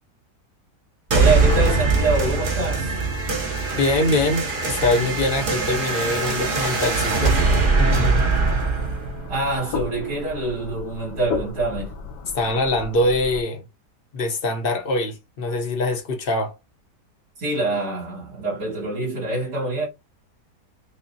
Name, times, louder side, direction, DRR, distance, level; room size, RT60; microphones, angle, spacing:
sound 1, 1.1-10.1, right 4 dB, 50° right, 0.6 m, -22 dB
voice 1, 1.1-3.0 9.3-11.9 17.4-19.9, right 2 dB, 80° right, 2.6 m, -25 dB
voice 2, 3.7-7.4 7.8-8.2 12.3-13.6 14.1-16.5, left 2 dB, 50° left, 0.7 m, -23 dB
sound 2, 8.3-13.4, left 5 dB, 90° left, 1.3 m, -34 dB
5.4 x 2.1 x 2.6 m
omnidirectional pair, 1.8 m